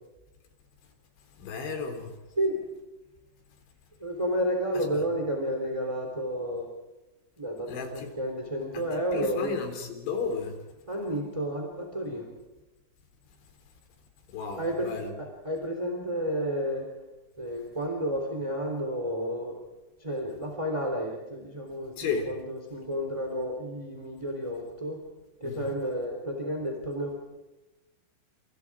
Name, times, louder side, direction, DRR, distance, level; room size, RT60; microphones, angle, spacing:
voice 1, 1.4-2.1 4.9-5.0 7.7-8.1 8.7-10.6 14.3-15.1 22.0-22.3 25.4-25.7, left 5 dB, 65° left, 5 dB, 5.8 m, -34 dB
voice 2, 4.0-6.7 7.4-9.6 10.9-12.3 14.6-14.9 15.2-16.9 17.4-19.5 20.0-25.0 25.4-27.2, equal, 10° right, 1 dB, 2.5 m, -31 dB
29.5 x 28.0 x 4.9 m, 1.1 s
omnidirectional pair, 5.7 m